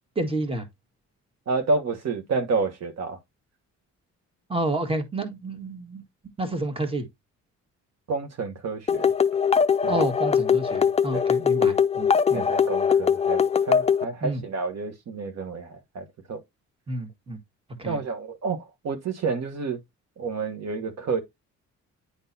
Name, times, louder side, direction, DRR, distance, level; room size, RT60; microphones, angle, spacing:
voice 1, 0.2-0.6 4.5-6.0 6.4-7.1 9.9-12.4 14.2-14.4 16.9-17.4 17.8-18.0, right 2 dB, 20° right, 1.7 m, -29 dB
voice 2, 1.5-3.2 8.1-9.1 9.8-10.0 11.1-11.3 12.3-16.4 17.9-19.8 20.2-21.2, right 4 dB, 60° right, 1.3 m, -29 dB
sound 1, 8.9-14.0, left 7 dB, 20° left, 0.4 m, -21 dB
9.8 x 3.8 x 2.7 m
cardioid pair, 90°, 30 cm